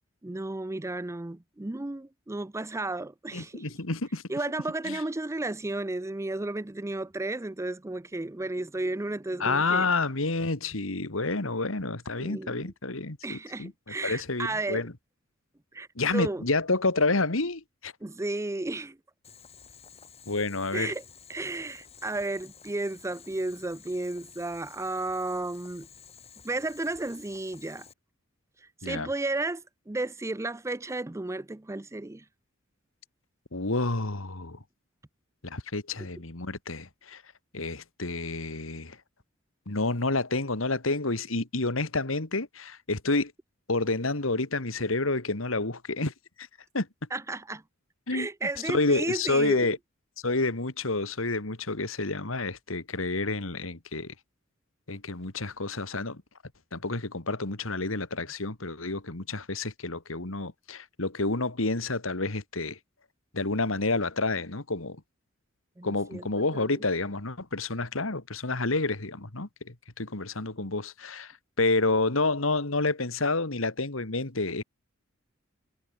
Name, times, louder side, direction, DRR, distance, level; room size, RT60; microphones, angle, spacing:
voice 1, 0.2-3.6 4.3-9.9 12.2-12.7 13.2-14.8 15.7-15.9 16.1-16.4 18.0-19.0 20.7-21.0 21.3-25.9 26.4-27.9 28.8-32.2 47.1-47.6 48.1-49.7 65.8-66.8, right 2 dB, 15° right, 0.5 m, -33 dB
voice 2, 3.3-4.2 4.9-5.0 9.4-13.7 14.0-14.9 16.0-17.9 20.3-20.9 28.8-29.1 33.5-34.6 35.4-37.2 37.5-39.0 39.7-43.3 43.7-46.1 46.7-46.9 48.1-48.3 48.6-49.8 50.2-54.1 54.9-56.2 56.7-62.8 63.3-65.0 65.8-71.3 71.6-74.6, left 3 dB, 80° left, 2.4 m, -29 dB
Boiling, 19.2-27.9, left 7 dB, 30° left, 4.6 m, -52 dB
head